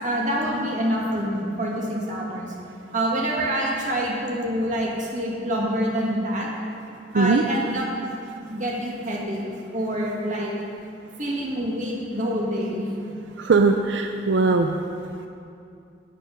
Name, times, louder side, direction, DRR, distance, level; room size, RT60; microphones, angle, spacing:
voice 1, 0.0-2.5 2.9-6.5 7.1-7.8 8.4-9.4 9.7-10.5 11.2-12.9, equal, 45° right, -3 dB, 1.9 m, -26 dB
voice 2, 13.4-14.8, right 4 dB, 85° right, 6 dB, 0.5 m, -20 dB
10.0 x 8.5 x 5.3 m, 2.5 s
head